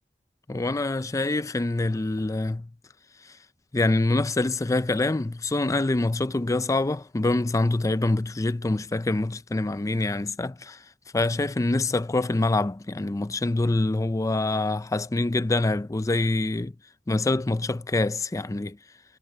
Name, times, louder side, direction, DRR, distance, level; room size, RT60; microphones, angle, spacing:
voice 1, 0.5-2.7 3.7-10.8 11.1-16.7 17.1-18.8, left 2 dB, 20° left, 0.4 m, -25 dB
head